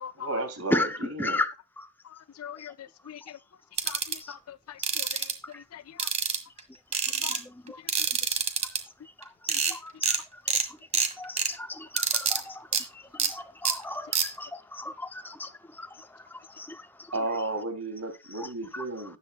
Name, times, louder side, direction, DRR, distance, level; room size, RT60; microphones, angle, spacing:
voice 1, 0.1-1.4 17.1-19.2, right 2 dB, 85° right, 3.2 m, -33 dB
voice 2, 0.7-1.9 2.6-2.7 4.2-4.4 5.5-5.6 7.2-7.8 8.3-8.5 9.2-9.3 9.7-10.2 11.2-16.1 16.5-16.9 18.4-18.5 18.7-18.8, left 2 dB, 10° left, 0.7 m, -35 dB
voice 3, 2.4-3.4 3.9-5.3 5.6-6.1 7.2-7.4 9.5-9.6, left 9 dB, 85° left, 0.4 m, -43 dB
sound 1, 3.8-4.2 4.8-5.3 6.0-6.6 6.9-7.4 7.9-8.8 9.2-9.3 9.5-9.7 10.0-10.2 10.5-10.6 10.9-11.5 12.0-12.4 12.7-12.8 13.2-13.3 13.6-13.7 14.1-14.3, right 6 dB, 30° right, 1.7 m, -26 dB
13.5 x 10.5 x 2.4 m
head